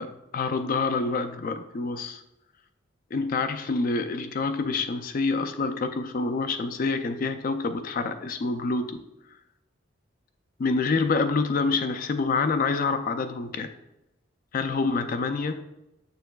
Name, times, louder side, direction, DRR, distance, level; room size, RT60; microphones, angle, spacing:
voice 1, 0.0-2.2 3.1-9.0 10.6-13.7 14.5-15.6, left 4 dB, 45° left, 8 dB, 0.4 m, -27 dB
6.7 x 6.3 x 2.3 m, 0.91 s
head